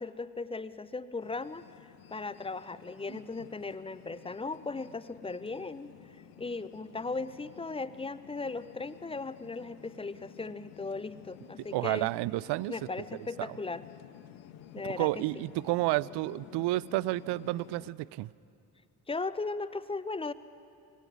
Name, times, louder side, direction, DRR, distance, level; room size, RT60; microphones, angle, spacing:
voice 1, 0.0-5.9 6.4-12.1 12.7-13.8 14.7-15.4 19.1-20.3, left 3 dB, 10° left, 15 dB, 0.7 m, -37 dB
sound 1, 1.2-17.9, left 11 dB, 70° left, 1.0 m, -52 dB
voice 2, 11.7-12.7 13.4-13.6 15.0-18.3, right 19 dB, 60° right, 22 dB, 0.5 m, -30 dB
25.0 x 18.0 x 6.2 m, 2.6 s
hypercardioid pair, 40°, 48 cm